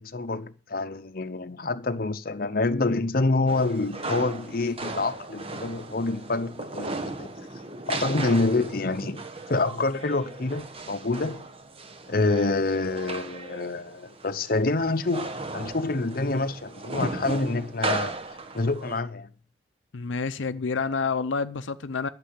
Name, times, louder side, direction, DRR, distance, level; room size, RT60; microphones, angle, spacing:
voice 1, 0.0-7.3 7.9-11.5 12.1-18.2 18.5-19.3, left 3 dB, 50° left, 0.8 m, -27 dB
sound 1, 3.5-19.0, right 3 dB, 30° right, 1.3 m, -36 dB
voice 2, 19.9-22.1, left 4 dB, 90° left, 0.6 m, -28 dB
11.5 x 6.8 x 8.0 m
head